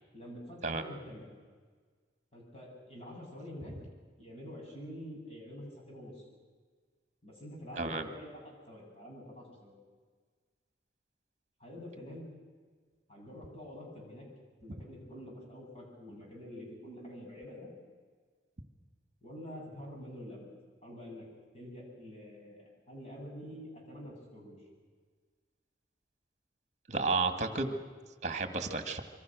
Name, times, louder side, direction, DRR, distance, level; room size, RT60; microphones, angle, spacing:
voice 1, 0.1-1.3 2.3-3.7 4.2-6.3 7.2-8.4 8.7-9.8 11.6-12.3 13.1-14.2 14.6-17.7 19.2-20.5 20.8-21.3 21.5-24.7, equal, 35° left, -2 dB, 7.9 m, -47 dB
voice 2, 7.8-8.1 26.9-27.8 28.2-29.0, right 3 dB, 40° right, 7 dB, 1.8 m, -32 dB
26.5 x 24.0 x 6.3 m, 1.5 s
head